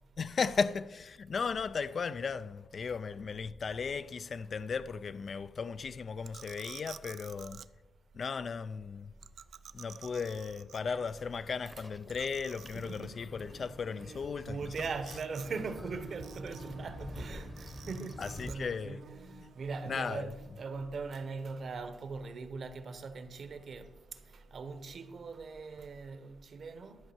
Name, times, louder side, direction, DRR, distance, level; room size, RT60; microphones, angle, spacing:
voice 1, 0.2-7.6 8.1-9.1 9.7-15.2 18.2-19.0 19.4-19.5 19.9-20.6, left 5 dB, 45° left, 0.3 m, -36 dB
sound 1, 6.2-7.7 9.2-11.0 11.4-11.5 11.7-11.8 12.1-13.1 14.7-15.5 15.8-16.8 17.6-18.6, right 8 dB, 70° right, 0.3 m, -51 dB
sound 2, 11.7-18.5, left 1 dB, 15° left, 0.9 m, -48 dB
voice 2, 12.7-13.7 14.0-23.9 24.5-27.0, right 4 dB, 45° right, 0.9 m, -41 dB
Bird / Buzz, 13.4-26.1, right 5 dB, 90° right, 1.4 m, -57 dB
11.5 x 5.4 x 7.1 m
wide cardioid pair, 150°, 0 cm